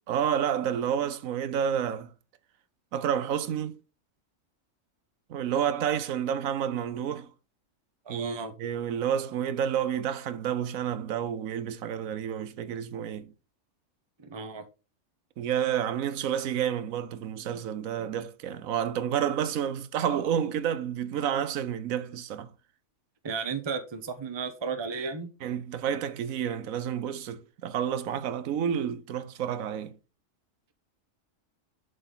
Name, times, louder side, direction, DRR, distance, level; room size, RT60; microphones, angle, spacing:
voice 1, 0.1-2.1 2.9-3.8 5.3-7.3 8.1-13.3 15.4-22.5 25.4-29.9, right 9 dB, 90° right, 1.2 m, -30 dB
voice 2, 8.1-8.5 14.2-14.6 23.2-25.3, right 5 dB, 25° right, 0.8 m, -34 dB
7.8 x 5.2 x 3.9 m
omnidirectional pair, 1.4 m